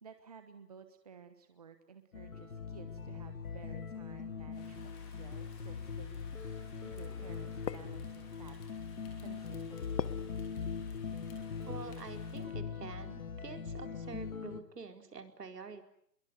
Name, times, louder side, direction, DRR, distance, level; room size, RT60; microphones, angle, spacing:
voice 1, 0.0-6.2 6.7-8.6 8.9-10.2, right 6 dB, 25° right, 8 dB, 1.2 m, -54 dB
sound 1, 2.1-14.6, left 5 dB, 55° left, 2.6 m, -41 dB
Rain, 4.5-12.5, left 5 dB, 10° left, 2.8 m, -60 dB
sound 2, 4.8-11.4, left 7 dB, 80° left, 1.5 m, -47 dB
voice 2, 11.6-15.8, right 5 dB, 70° right, 6 dB, 4.6 m, -47 dB
26.0 x 23.0 x 9.7 m, 0.70 s
hypercardioid pair, 175°, 50 cm